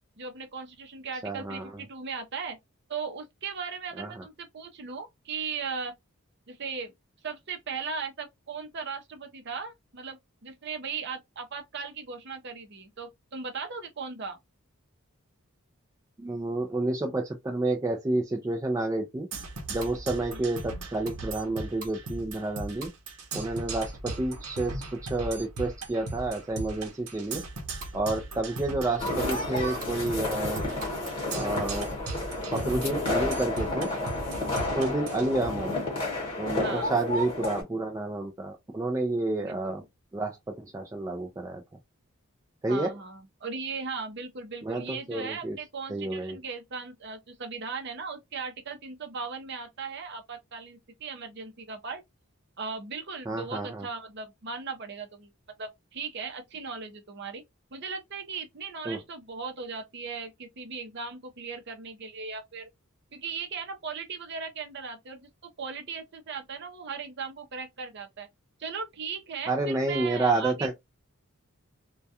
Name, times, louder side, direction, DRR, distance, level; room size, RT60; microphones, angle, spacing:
voice 1, 0.2-2.6 2.9-5.9 6.5-6.9 7.2-14.4 20.3-20.5 28.5-28.6 36.6-36.9 39.4-39.8 42.7-52.0 52.6-55.3 55.6-57.4 57.7-62.7 63.1-68.3 68.6-70.7, right 5 dB, 50° right, 0.6 m, -38 dB
voice 2, 1.2-1.8 4.0-4.2 16.2-19.3 19.7-22.9 23.3-24.8 25.1-27.4 27.9-30.6 31.3-31.9 32.5-33.9 34.8-35.7 36.4-39.8 40.1-41.6 42.6-43.0 44.6-45.6 45.9-46.4 53.3-53.9 58.9-59.0 69.5-70.7, right 2 dB, 15° right, 0.3 m, -30 dB
Percussion, 19.3-35.3, right 2 dB, 90° right, 0.7 m, -38 dB
sound 1, 29.0-37.6, left 2 dB, 25° left, 1.1 m, -31 dB
2.3 x 2.2 x 2.6 m
head